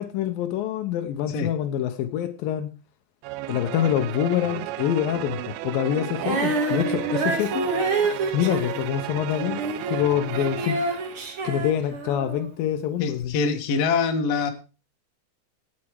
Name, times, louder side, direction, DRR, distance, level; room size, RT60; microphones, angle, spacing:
voice 1, 0.0-2.7 3.5-7.6 8.3-9.6 9.9-10.8 11.4-13.3, left 10 dB, 85° left, 2.0 m, -26 dB
sound 1, 3.2-11.8, right 14 dB, 90° right, 3.3 m, -34 dB
Female singing, 6.1-12.5 13.2-13.3, right 3 dB, 40° right, 2.0 m, -28 dB
voice 2, 13.0-14.5, left 5 dB, 65° left, 1.6 m, -24 dB
17.5 x 7.6 x 4.7 m
omnidirectional pair, 5.4 m